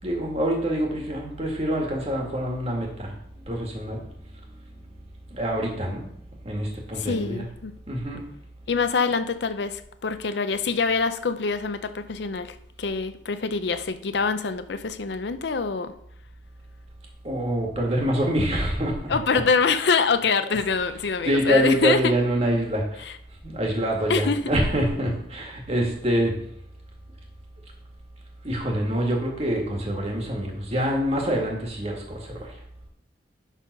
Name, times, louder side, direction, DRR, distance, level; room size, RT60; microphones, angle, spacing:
voice 1, 0.0-3.2 3.5-4.0 4.5-5.0 5.3-6.0 6.4-7.4 7.9-8.2 17.2-19.2 21.2-23.1 23.4-26.3 28.4-32.5, equal, 35° right, 1.9 m, -25 dB
voice 2, 6.9-7.7 8.7-15.9 19.1-22.0 23.0-23.1 24.1-24.6, left 5 dB, 70° left, 0.5 m, -25 dB
11.0 x 3.9 x 5.3 m
head